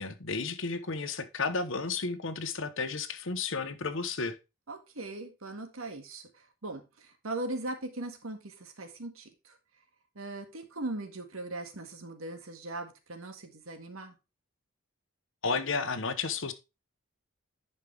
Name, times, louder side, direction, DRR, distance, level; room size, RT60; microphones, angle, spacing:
voice 1, 0.0-4.4 15.4-16.5, left 4 dB, 60° left, 1.0 m, -32 dB
voice 2, 4.7-9.6 10.2-14.2, right 2 dB, 70° right, 1.8 m, -39 dB
10.5 x 5.5 x 3.4 m
head